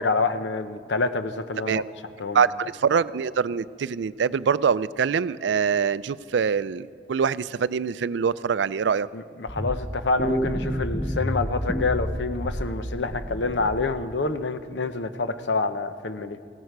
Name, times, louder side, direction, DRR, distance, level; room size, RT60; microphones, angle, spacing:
voice 1, 0.0-1.8 2.2-2.4 9.1-16.4, left 3 dB, 70° left, 11 dB, 0.7 m, -27 dB
voice 2, 2.3-9.1, right 6 dB, 70° right, 17 dB, 0.4 m, -24 dB
sound 1, 9.5-14.1, equal, ahead, 0.5 m, -30 dB
19.5 x 16.0 x 4.6 m, 2.2 s
head